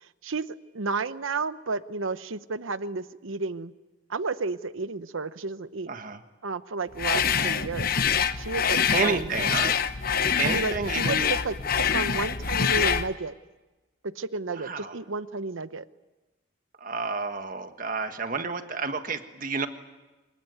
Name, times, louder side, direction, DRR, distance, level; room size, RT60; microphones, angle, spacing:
voice 1, 0.7-3.7 4.1-5.9 6.4-9.5 10.4-11.6 11.9-13.3 14.0-15.8, right 4 dB, 80° right, 14 dB, 0.9 m, -32 dB
voice 2, 5.9-6.2 7.2-7.6 8.9-9.8 10.4-11.3 14.5-15.0 16.8-19.7, right 4 dB, 45° right, 8 dB, 1.5 m, -30 dB
sound 1, 7.0-13.1, left 7 dB, 45° left, 0.8 m, -25 dB
25.0 x 21.0 x 9.3 m, 1.1 s
head